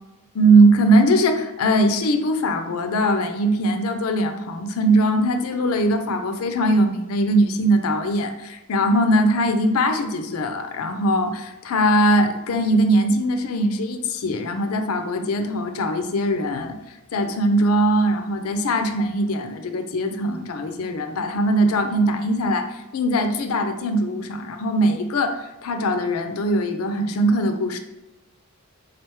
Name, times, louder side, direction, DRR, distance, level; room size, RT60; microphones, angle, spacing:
voice 1, 0.3-16.8 17.1-27.8, right 1 dB, 75° left, 6 dB, 0.5 m, -21 dB
3.9 x 3.3 x 3.0 m, 1.0 s
head